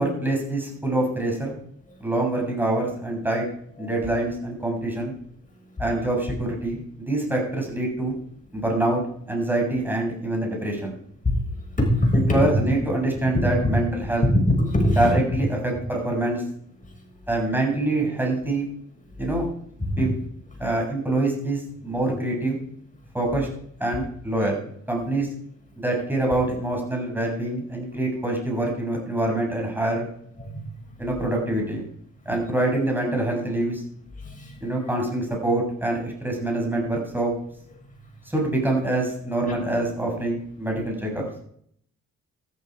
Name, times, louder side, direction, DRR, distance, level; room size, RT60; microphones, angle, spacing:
voice 1, 0.0-1.6 2.0-3.5 3.8-5.2 5.8-8.2 8.5-9.0 9.3-10.9 12.1-14.3 15.0-16.4 17.3-18.7 19.2-19.5 20.0-20.1 20.6-22.6 23.1-23.5 23.8-24.6 24.9-25.3 25.8-30.1 31.0-31.9 32.3-33.8 34.6-37.3 38.3-41.3, right 2 dB, 5° right, 0 dB, 6.9 m, -25 dB
voice 2, 11.2-12.2 14.6-15.1 16.8-17.2 19.1-19.2 19.8-20.0 30.4-30.7 34.1-34.7 36.0-36.1, left 1 dB, 25° left, 1 dB, 6.8 m, -24 dB
13.5 x 12.0 x 5.0 m, 0.65 s
cardioid pair, 90°, 30 cm